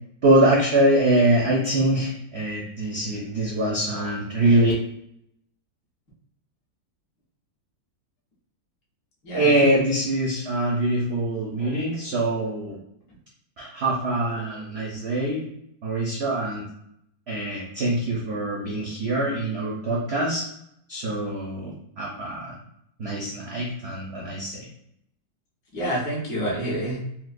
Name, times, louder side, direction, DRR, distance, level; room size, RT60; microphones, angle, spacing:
voice 1, 0.2-4.7 9.3-12.8 13.6-15.5 15.8-16.6 17.3-20.5 20.9-22.5 23.0-24.7, right 1 dB, 70° right, -4 dB, 0.6 m, -23 dB
voice 2, 9.2-9.8 25.7-27.0, right 1 dB, 65° left, -5 dB, 1.6 m, -28 dB
4.4 x 2.1 x 2.5 m, 0.74 s
omnidirectional pair, 1.9 m